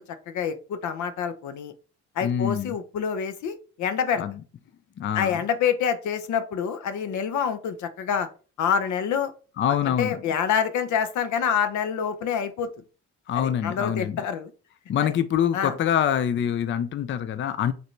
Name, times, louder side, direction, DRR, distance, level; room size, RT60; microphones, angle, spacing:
voice 1, 0.3-1.7 2.2-4.2 5.1-8.3 8.6-9.3 9.9-12.7 13.3-14.5 15.0-15.1 15.5-15.8, left 7 dB, 75° left, 10 dB, 0.7 m, -27 dB
voice 2, 2.2-2.7 4.2-4.3 5.0-5.4 9.6-10.2 13.3-14.2 14.9-17.7, left 9 dB, 40° left, 12 dB, 0.4 m, -25 dB
5.1 x 3.3 x 3.1 m, 0.37 s
cardioid pair, 90°, 30 cm